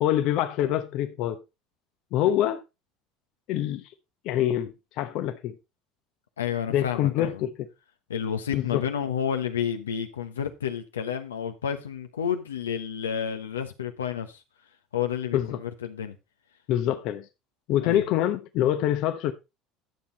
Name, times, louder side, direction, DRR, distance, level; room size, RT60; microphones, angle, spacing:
voice 1, 0.0-1.4 2.1-2.6 3.5-3.8 4.2-5.6 6.7-7.7 8.5-8.8 15.3-15.6 16.7-17.2 17.7-19.3, left 12 dB, 60° left, 0.9 m, -25 dB
voice 2, 6.4-7.4 8.1-14.4 14.9-16.2 17.8-18.1, left 8 dB, 85° left, 1.2 m, -30 dB
11.0 x 7.2 x 4.0 m
hypercardioid pair, 70°, 0 cm